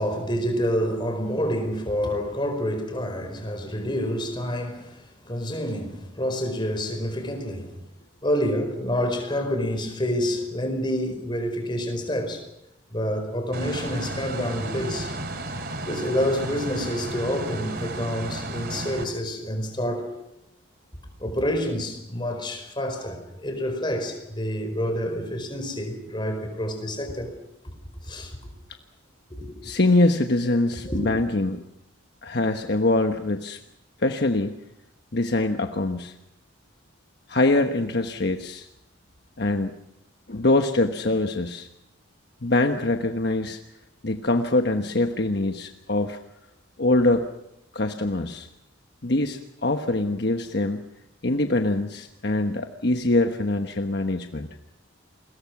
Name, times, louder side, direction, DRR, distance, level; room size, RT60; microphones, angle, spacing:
voice 1, 0.0-7.8 8.2-12.4 12.9-15.1 15.9-20.1 21.2-27.3 28.0-28.5 29.3-29.7 30.8-31.0, equal, 25° left, 4.7 m, -28 dB
sound 1, 13.5-19.1, right 2 dB, 50° right, 2.6 m, -33 dB
voice 2, 29.6-31.6 32.2-33.6 34.0-34.6 35.1-36.1 37.3-38.7 39.4-39.7 40.3-41.7 42.4-43.6 44.0-46.2 46.8-47.2 47.7-48.5 49.0-50.8 51.2-54.5, left 2 dB, 55° left, 1.2 m, -23 dB
29.0 x 21.5 x 6.1 m
head